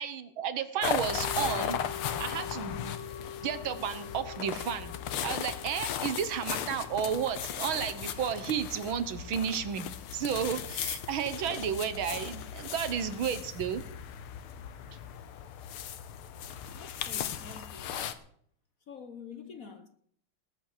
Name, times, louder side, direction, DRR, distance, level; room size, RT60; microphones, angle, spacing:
voice 1, 0.0-1.8 2.2-3.0 3.4-4.9 5.2-13.8, right 8 dB, 70° right, 1.9 m, -32 dB
sound 1, 0.8-18.1, left 9 dB, 85° left, 1.9 m, -37 dB
sound 2, 1.2-11.4 11.7-11.8, left 7 dB, 30° left, 2.0 m, -46 dB
voice 2, 16.7-18.0 18.9-19.9, left 5 dB, 50° left, 1.2 m, -47 dB
19.5 x 8.7 x 6.6 m
omnidirectional pair, 2.4 m